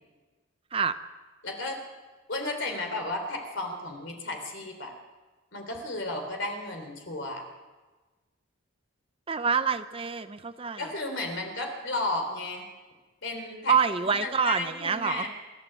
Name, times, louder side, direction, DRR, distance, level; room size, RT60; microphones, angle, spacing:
voice 1, 1.4-1.8 2.3-4.9 5.5-7.4 10.8-12.7 13.2-13.7 14.2-15.3, left 2 dB, 55° left, 4 dB, 3.7 m, -33 dB
voice 2, 9.3-10.8 13.7-15.3, right 6 dB, 25° right, 11 dB, 0.5 m, -26 dB
28.5 x 11.5 x 8.1 m, 1.3 s
head